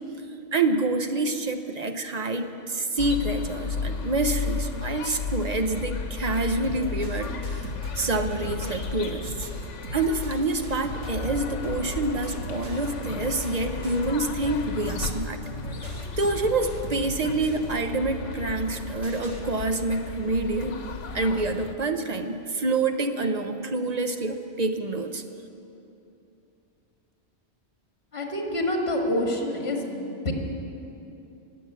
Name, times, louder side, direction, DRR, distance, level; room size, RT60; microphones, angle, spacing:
voice 1, 0.5-7.7 8.0-9.5 9.9-15.4 16.2-20.8 21.1-25.2, right 2 dB, 40° right, 7 dB, 0.8 m, -27 dB
sound 1, 3.0-21.8, left 4 dB, 85° left, 1.3 m, -34 dB
sound 2, 6.6-19.4, right 2 dB, 75° right, 1.9 m, -41 dB
voice 2, 28.1-30.3, left 1 dB, 60° left, 1 dB, 2.3 m, -27 dB
19.5 x 7.7 x 8.0 m, 2.8 s
omnidirectional pair, 1.2 m